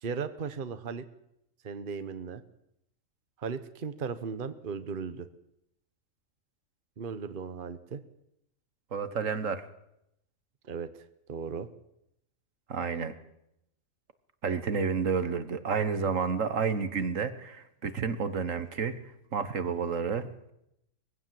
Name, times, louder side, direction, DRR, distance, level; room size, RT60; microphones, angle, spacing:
voice 1, 0.0-1.0 1.6-2.4 3.4-5.3 7.0-8.0 10.6-10.9 11.3-11.7, right 5 dB, 45° right, 11 dB, 1.2 m, -36 dB
voice 2, 8.9-9.6 12.7-13.1 14.4-18.9 19.3-20.5, right 5 dB, 75° right, 11 dB, 1.7 m, -30 dB
22.5 x 16.0 x 7.7 m, 0.82 s
omnidirectional pair, 1.4 m